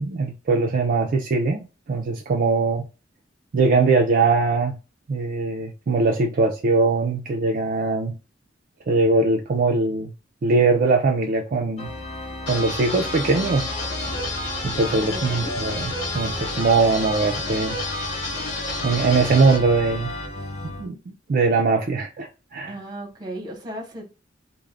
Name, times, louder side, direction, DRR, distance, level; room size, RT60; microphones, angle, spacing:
voice 1, 0.0-2.8 3.5-4.8 5.1-8.1 8.9-10.1 10.4-11.9 12.5-13.7 14.6-17.8 18.8-20.1 20.6-22.7, right 3 dB, 45° right, 0.4 m, -21 dB
Organ, 11.8-20.9, left 2 dB, 35° left, 0.6 m, -34 dB
sound 1, 12.5-19.6, left 2 dB, 65° left, 1.1 m, -31 dB
voice 2, 14.9-15.5 22.7-24.0, right 1 dB, 20° right, 0.9 m, -35 dB
2.4 x 2.1 x 3.2 m
head